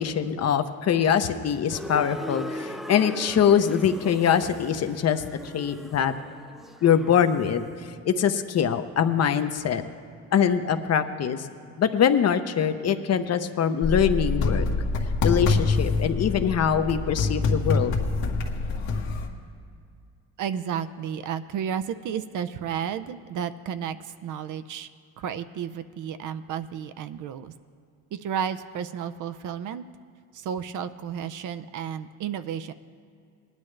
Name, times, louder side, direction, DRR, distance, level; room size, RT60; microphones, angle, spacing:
voice 1, 0.0-5.2 5.5-6.1 6.8-7.7 8.0-9.8 10.3-11.5 11.8-14.7 15.2-17.9, left 8 dB, 45° left, 8 dB, 0.8 m, -23 dB
sound 1, 1.7-7.6, equal, ahead, 0.4 m, -39 dB
sound 2, 13.8-19.3, left 3 dB, 80° left, 1.5 m, -25 dB
voice 2, 20.4-24.9 25.2-27.5 28.1-29.8 30.3-32.7, right 8 dB, 55° right, 12 dB, 0.6 m, -32 dB
19.0 x 10.5 x 3.3 m, 2.4 s
cardioid pair, 95°, 37 cm